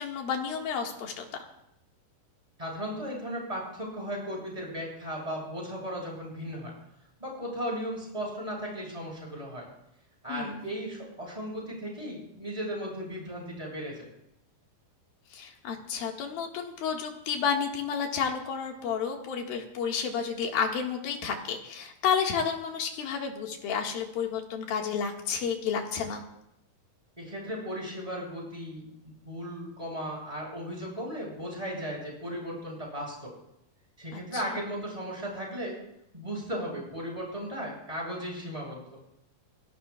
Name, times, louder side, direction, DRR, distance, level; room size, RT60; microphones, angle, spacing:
voice 1, 0.0-1.5 10.3-10.7 15.3-26.2 34.1-34.6, left 6 dB, 85° left, 2 dB, 3.6 m, -31 dB
voice 2, 2.6-6.7 7.2-9.7 10.2-14.1 27.2-28.8 29.2-33.3 34.0-35.8 36.1-39.0, equal, 10° right, -3 dB, 7.7 m, -36 dB
25.5 x 17.5 x 2.4 m, 0.80 s
omnidirectional pair, 4.1 m